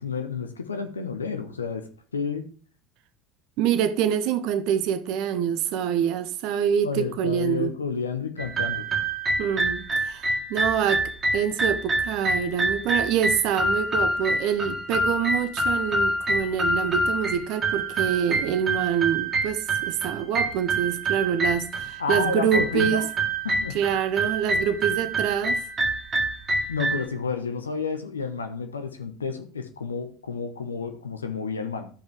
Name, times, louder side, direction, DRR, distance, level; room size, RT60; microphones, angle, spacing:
voice 1, 0.0-2.5 6.8-8.9 22.0-23.1 23.4-23.8 26.7-31.9, left 5 dB, 85° left, 1.0 m, -30 dB
voice 2, 3.6-7.7 9.4-23.0 23.7-25.6, right 9 dB, 55° right, 0.8 m, -26 dB
sound 1, 8.4-27.1, right 2 dB, 25° right, 2.0 m, -26 dB
13.0 x 5.3 x 3.5 m
figure-of-eight pair, 70°, 0 cm